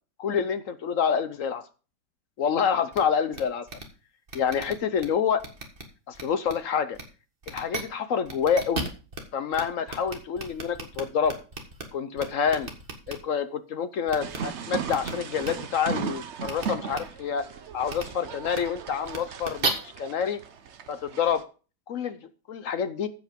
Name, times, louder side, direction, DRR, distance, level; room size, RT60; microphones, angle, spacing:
voice 1, 0.2-1.6 2.4-3.7 4.3-5.4 6.1-7.0 7.5-8.9 9.3-11.4 11.9-12.7 13.1-17.4 17.7-20.4 20.9-21.4 21.9-22.2 22.5-23.1, left 7 dB, 60° left, 11 dB, 0.9 m, -27 dB
sound 1, 2.9-3.0 3.3-3.4 3.7-3.8 4.3-5.0 5.4-5.8 6.1-6.5 6.9-7.0 7.4-7.8 8.2-9.2 9.5-9.6 9.9-11.8 12.2-13.1 14.1-14.4 14.9-15.1 15.4-15.5 16.4-16.6 16.9-17.0 17.9-18.0 18.5-18.6 19.0-19.7, right 3 dB, 30° right, 1.7 m, -34 dB
sound 2, 14.2-21.4, right 7 dB, 60° right, 0.7 m, -37 dB
15.0 x 5.3 x 5.1 m, 0.35 s
omnidirectional pair, 2.1 m